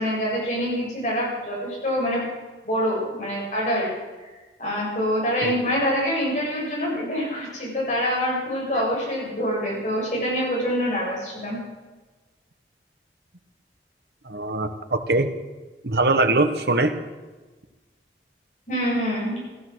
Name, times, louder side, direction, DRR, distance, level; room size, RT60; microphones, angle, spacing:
voice 1, 0.0-2.2 2.6-3.9 4.2-4.3 4.6-11.6 18.7-19.4, equal, 45° left, -4 dB, 7.0 m, -25 dB
voice 2, 14.2-15.3 15.8-16.9, right 2 dB, 65° right, 8 dB, 1.3 m, -22 dB
15.5 x 13.0 x 6.3 m, 1.2 s
head